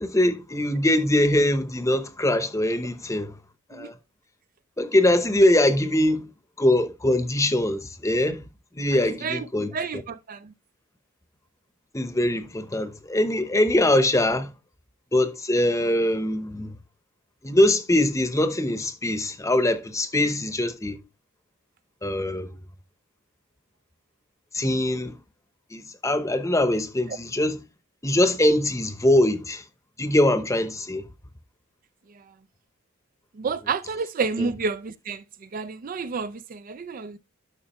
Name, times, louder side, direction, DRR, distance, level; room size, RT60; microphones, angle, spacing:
voice 1, 0.0-3.3 3.7-3.9 4.8-6.3 6.6-8.5 8.7-9.7 11.9-14.5 15.1-16.7 17.4-21.0 22.0-22.5 24.5-25.2 25.7-27.6 28.0-29.6 30.0-31.0 34.4-34.5, left 1 dB, 15° left, 0.9 m, -22 dB
voice 2, 9.0-10.5 33.4-35.2 35.5-37.2, right 5 dB, 40° right, 0.4 m, -30 dB
11.5 x 6.1 x 3.0 m
head